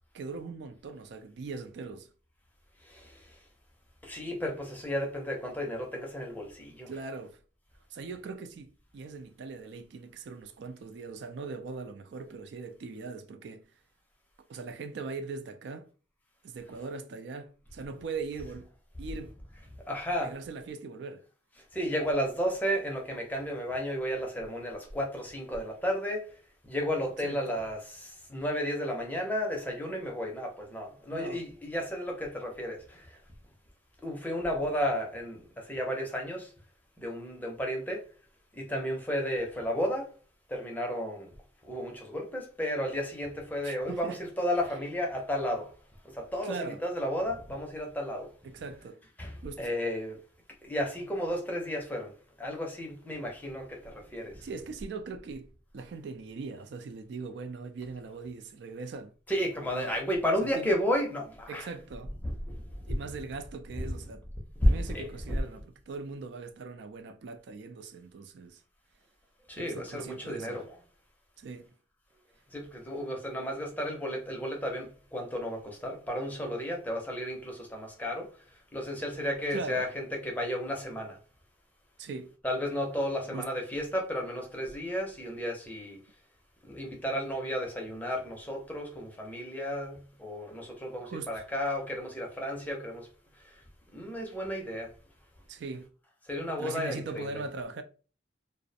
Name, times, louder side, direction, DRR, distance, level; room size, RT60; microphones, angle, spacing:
voice 1, 0.1-2.1 6.9-7.4 7.9-8.7 8.9-13.7 14.5-15.9 16.4-18.7 19.0-19.4 20.2-21.2 27.2-27.6 31.1-31.4 43.6-44.2 46.4-46.8 48.4-49.0 49.4-49.7 54.4-59.1 59.7-59.9 60.5-60.7 61.5-62.1 62.9-64.2 64.6-68.6 69.6-70.6 71.4-71.7 79.5-79.9 82.0-82.3 83.3-83.5 91.0-91.4 95.5-95.9 96.6-97.8, right 4 dB, 65° right, 0.3 m, -40 dB
voice 2, 4.0-6.9 19.9-20.3 21.7-26.2 26.6-33.1 34.0-36.5 37.0-38.0 38.6-40.1 40.5-41.3 41.6-45.7 46.1-48.3 49.2-50.2 50.6-54.5 59.3-61.7 62.2-62.6 63.8-63.9 64.6-65.4 69.5-70.8 72.5-78.3 78.7-81.2 82.4-86.0 86.7-93.1 93.9-94.9 96.3-97.4, equal, 10° left, 0.5 m, -33 dB
2.4 x 2.0 x 2.6 m
head